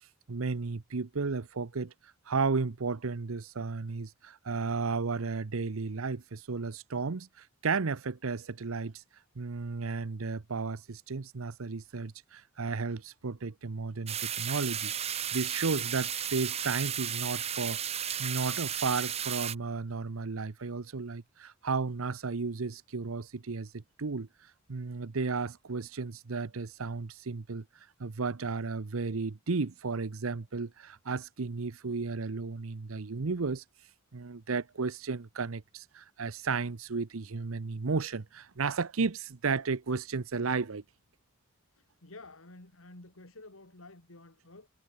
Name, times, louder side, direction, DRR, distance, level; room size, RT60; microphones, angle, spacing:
voice 1, 0.3-1.9 2.3-9.0 9.4-24.3 24.7-27.6 28.0-33.6 34.1-40.8, right 4 dB, 80° right, 0.8 m, -33 dB
sound 1, 14.1-19.6, right 9 dB, 30° right, 0.7 m, -34 dB
voice 2, 41.8-44.7, left 2 dB, 75° left, 2.9 m, -51 dB
head